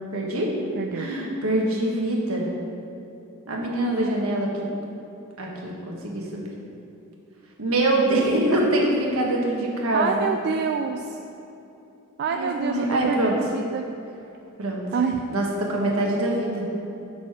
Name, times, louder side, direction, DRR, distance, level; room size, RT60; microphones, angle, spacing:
voice 1, 0.1-0.5 0.9-2.5 3.5-4.7 5.4-6.4 7.6-10.1 12.3-13.3 14.6-14.8 15.3-16.6, right 1 dB, 70° right, -2 dB, 1.4 m, -24 dB
voice 2, 0.8-1.1 9.9-11.2 12.2-13.9 14.9-15.2, right 6 dB, 50° right, 5 dB, 0.3 m, -27 dB
8.1 x 4.2 x 5.9 m, 2.9 s
head